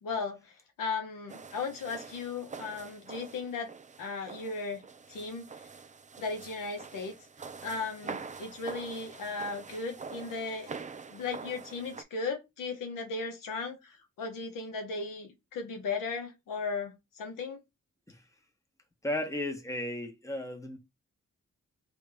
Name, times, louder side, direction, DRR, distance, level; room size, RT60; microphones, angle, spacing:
voice 1, 0.0-0.4 0.8-3.7 4.0-4.8 5.1-5.7 6.2-7.1 7.6-10.8 11.1-17.6, left 4 dB, 90° left, 0.9 m, -36 dB
sound 1, 1.3-12.0, right 5 dB, 25° right, 0.4 m, -45 dB
voice 2, 19.0-20.8, left 1 dB, 10° left, 1.1 m, -34 dB
3.3 x 2.5 x 3.4 m
supercardioid pair, 45°, 32 cm